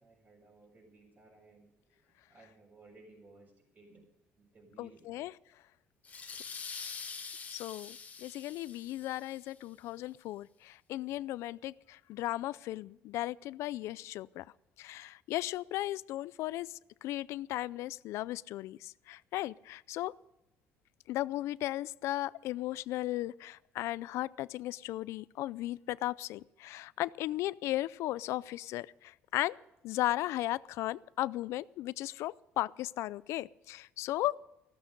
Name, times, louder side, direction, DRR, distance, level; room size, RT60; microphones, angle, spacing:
voice 1, 0.0-4.1 4.4-5.3 6.3-6.4, right 2 dB, 40° right, 5.5 m, -59 dB
voice 2, 4.8-5.3 7.5-14.4 14.8-16.7 17.0-20.1 21.1-29.6 29.8-34.4, left 15 dB, 80° left, 0.4 m, -36 dB
sound 1, 6.0-9.5, left 5 dB, 30° left, 1.5 m, -45 dB
15.0 x 13.5 x 5.3 m
cardioid pair, 110°, 5 cm